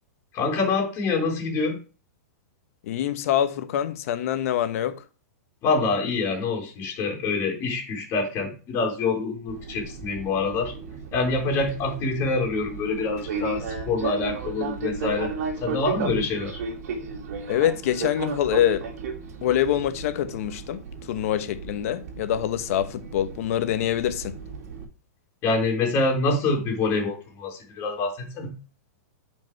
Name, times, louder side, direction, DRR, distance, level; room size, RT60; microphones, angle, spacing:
voice 1, 0.3-1.8 5.6-10.7 11.1-15.3 15.6-16.6 25.4-28.5, left 3 dB, 30° left, 3.5 m, -26 dB
voice 2, 2.9-5.0 17.5-18.8 19.4-20.8 21.1-24.4, left 11 dB, 60° left, 1.1 m, -25 dB
Fixed-wing aircraft airplane, 9.5-24.8, right 5 dB, 65° right, 2.3 m, -34 dB
9.3 x 5.2 x 4.5 m
hypercardioid pair, 140°, 9 cm